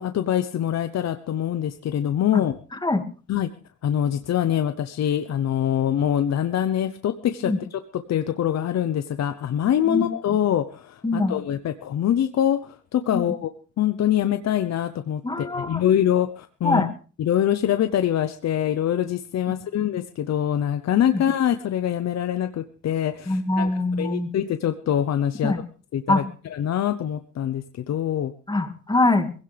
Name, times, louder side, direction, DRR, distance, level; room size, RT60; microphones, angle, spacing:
voice 1, 0.0-2.6 3.3-3.5 3.8-7.8 8.1-13.5 13.8-16.9 17.2-23.7 24.0-25.5 25.9-26.2 26.5-28.3, left 10 dB, 60° left, 10 dB, 0.9 m, -24 dB
voice 2, 2.7-3.0 7.4-7.6 9.9-10.1 11.0-11.4 13.1-13.2 15.2-15.8 16.6-16.9 19.5-19.6 21.1-21.2 23.3-24.3 25.4-25.6 26.1-26.2 28.5-29.3, left 2 dB, 15° left, 7 dB, 2.0 m, -23 dB
20.0 x 16.5 x 3.4 m, 0.37 s
cardioid pair, 90°, 30 cm